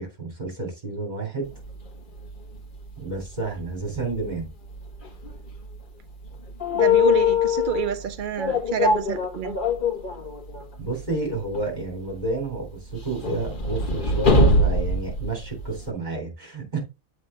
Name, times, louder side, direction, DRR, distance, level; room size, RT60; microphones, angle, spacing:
voice 1, 0.0-1.5 3.0-4.5 10.8-16.8, right 3 dB, 30° right, 3.3 m, -30 dB
sound 1, 1.6-1.7 2.2-2.3 2.6-2.7 4.0-4.4 4.8-4.9 5.1-5.5 6.6-7.9 8.4-10.6 11.0-11.1 11.5-11.6 12.9-15.9, left 4 dB, 40° left, 1.4 m, -22 dB
voice 2, 6.7-9.6, right 8 dB, 75° right, 0.4 m, -27 dB
7.5 x 3.7 x 5.0 m
omnidirectional pair, 1.5 m